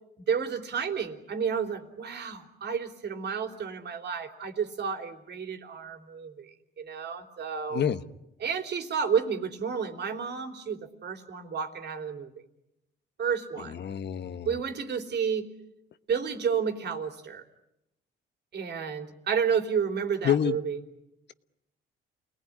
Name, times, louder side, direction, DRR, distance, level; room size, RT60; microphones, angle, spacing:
voice 1, 0.3-6.5 6.8-7.8 8.4-12.3 13.2-13.8 14.5-15.5 16.1-17.4 18.5-20.8, right 6 dB, 60° right, 5 dB, 3.4 m, -31 dB
voice 2, 13.7-14.5 20.2-20.6, left 9 dB, 60° left, 11 dB, 1.2 m, -27 dB
29.5 x 19.5 x 9.9 m, 0.88 s
cardioid pair, 90°, 20 cm